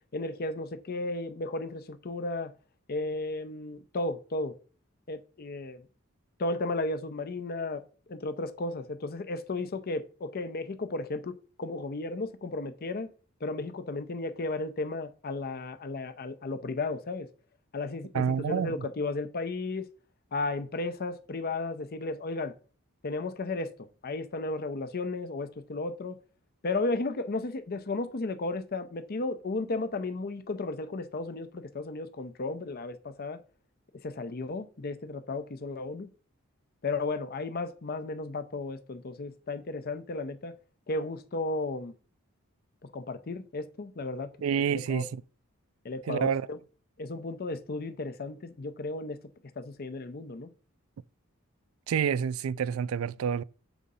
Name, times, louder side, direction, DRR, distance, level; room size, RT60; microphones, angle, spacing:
voice 1, 0.1-2.5 2.9-4.6 5.1-5.8 6.4-13.1 13.4-17.3 17.7-19.9 20.3-22.5 23.0-26.2 26.6-33.4 34.0-36.1 36.8-40.5 40.9-41.9 42.8-45.1 45.8-46.6 47.0-49.2 49.6-50.5, left 2 dB, 45° left, 0.6 m, -34 dB
voice 2, 18.1-18.8 44.4-45.1 46.1-46.4 51.9-53.4, right 7 dB, 75° right, 0.3 m, -28 dB
7.0 x 3.7 x 5.4 m
head